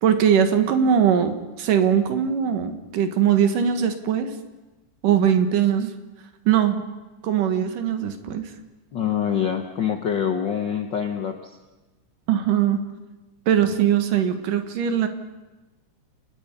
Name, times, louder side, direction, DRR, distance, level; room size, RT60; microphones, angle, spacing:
voice 1, 0.0-4.3 5.0-5.9 6.5-6.8 7.2-8.5 12.3-12.8 13.5-15.1, right 8 dB, 85° right, 8 dB, 3.2 m, -21 dB
voice 2, 8.9-11.5, left 8 dB, 70° left, 6 dB, 1.1 m, -25 dB
29.0 x 19.0 x 5.4 m, 1.1 s
omnidirectional pair, 3.7 m